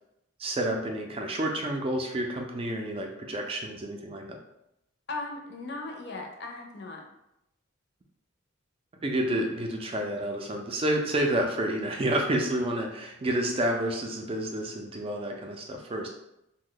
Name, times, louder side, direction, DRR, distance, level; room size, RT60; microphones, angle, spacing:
voice 1, 0.4-4.4 9.0-16.1, right 1 dB, 25° right, 2 dB, 0.3 m, -29 dB
voice 2, 5.1-7.0, left 3 dB, 55° left, 1 dB, 0.6 m, -37 dB
2.8 x 2.1 x 3.8 m, 0.85 s
head